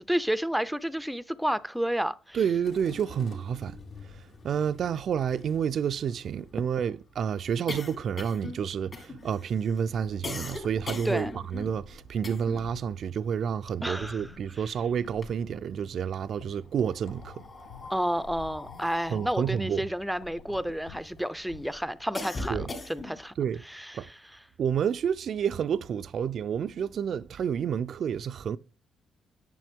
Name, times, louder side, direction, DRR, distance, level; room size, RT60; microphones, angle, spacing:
voice 1, 0.0-2.4 10.9-11.3 13.8-14.3 17.9-23.3 23.7-24.2, equal, ahead, 0.5 m, -31 dB
voice 2, 2.3-3.8 4.1-17.4 19.1-19.8 22.5-22.7 23.4-23.6 23.9-24.1 24.6-28.6, right 8 dB, 60° right, 0.4 m, -29 dB
sound 1, 2.6-6.7, left 3 dB, 65° left, 2.2 m, -49 dB
sound 2, 5.3-12.8 13.1-14.6 15.0-15.9 16.7-21.1 21.6-23.3, left 3 dB, 40° left, 2.2 m, -41 dB
sound 3, 10.0-21.9, left 6 dB, 85° left, 0.9 m, -50 dB
9.1 x 6.6 x 3.6 m
cardioid pair, 90°, 0 cm